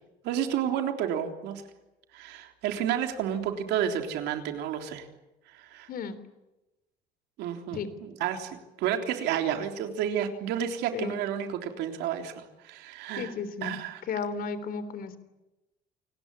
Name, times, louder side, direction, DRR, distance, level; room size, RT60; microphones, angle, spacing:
voice 1, 0.2-1.6 2.1-5.1 5.5-5.9 7.4-13.3 13.6-14.0, right 9 dB, 90° right, 5 dB, 3.6 m, -31 dB
voice 2, 13.2-13.8 14.1-15.2, left 5 dB, 60° left, 13 dB, 3.5 m, -33 dB
28.5 x 19.5 x 9.9 m, 1.0 s
cardioid pair, 110°, 17 cm